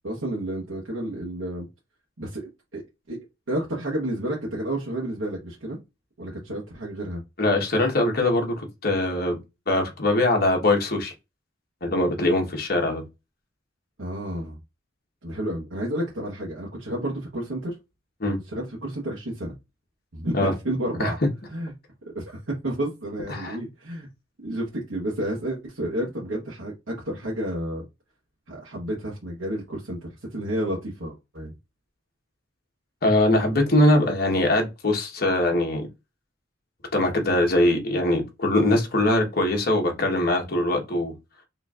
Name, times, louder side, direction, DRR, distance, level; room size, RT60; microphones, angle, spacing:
voice 1, 0.0-1.7 2.2-2.8 3.1-3.2 3.5-5.8 6.2-7.2 14.0-14.6 15.2-17.8 18.5-19.5 20.1-21.2 21.5-21.7 22.1-24.1 24.4-27.8 28.5-31.5, right 1 dB, 80° right, 1.2 m, -31 dB
voice 2, 7.4-9.4 9.7-11.1 11.8-13.0 18.2-18.4 20.3-20.5 21.0-21.1 23.3-23.6 33.0-35.9 36.9-41.1, left 1 dB, 50° left, 1.2 m, -22 dB
4.3 x 3.1 x 2.4 m
head